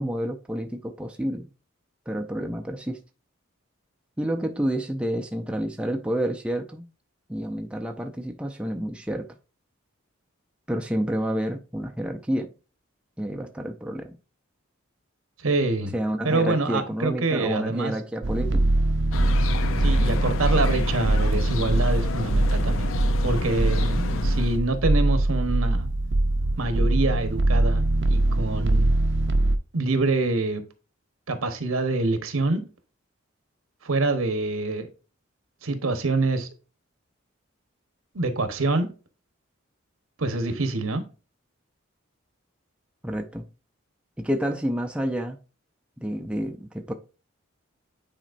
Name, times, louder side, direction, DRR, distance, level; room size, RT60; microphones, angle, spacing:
voice 1, 0.0-1.5 2.1-3.0 4.2-6.9 7.3-9.3 10.7-12.5 13.2-14.1 15.9-18.7 43.0-43.5 44.2-45.4 46.0-46.9, equal, 5° right, 0.5 m, -29 dB
voice 2, 15.4-15.9 16.2-17.9 19.8-22.9 23.2-25.9 26.6-28.9 29.7-30.6 31.3-32.6 33.8-34.9 35.6-36.5 38.1-38.9 40.2-41.0, right 3 dB, 85° right, 1.1 m, -26 dB
sound 1, 18.2-29.6, right 2 dB, 60° right, 0.6 m, -23 dB
sound 2, 19.1-24.6, left 4 dB, 75° left, 0.5 m, -31 dB
9.0 x 4.2 x 2.6 m
head